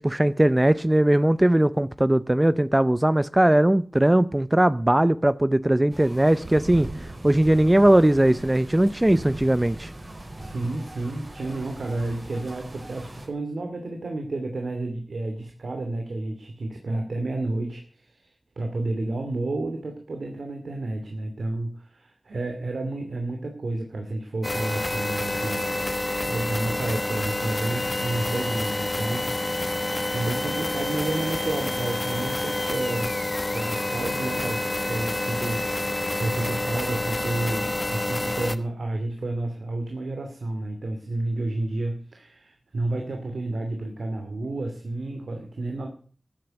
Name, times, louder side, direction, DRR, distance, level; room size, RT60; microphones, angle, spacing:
voice 1, 0.0-9.9, right 1 dB, 20° right, 0.6 m, -20 dB
sound 1, 5.9-13.3, right 2 dB, 45° right, 5.0 m, -39 dB
voice 2, 10.4-25.7 26.2-29.8 30.1-33.1 33.5-45.9, right 2 dB, 85° right, 2.7 m, -31 dB
sound 2, 24.4-38.6, left 1 dB, 30° left, 1.1 m, -28 dB
14.0 x 9.5 x 6.6 m
wide cardioid pair, 55°, 0 cm